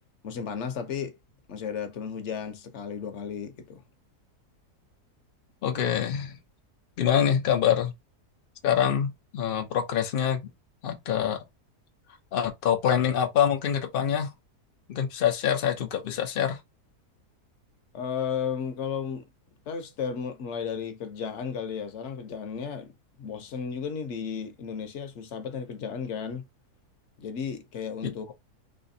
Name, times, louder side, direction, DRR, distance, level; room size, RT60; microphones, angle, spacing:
voice 1, 0.2-1.1 1.5-3.8 17.9-19.3 19.7-26.5 27.2-28.3, left 7 dB, 60° left, 0.8 m, -34 dB
voice 2, 5.6-6.4 7.0-7.9 8.6-10.4 10.8-11.4 12.3-14.3 14.9-16.6 28.0-28.1, left 9 dB, 90° left, 0.4 m, -25 dB
3.3 x 3.0 x 2.6 m
omnidirectional pair, 1.7 m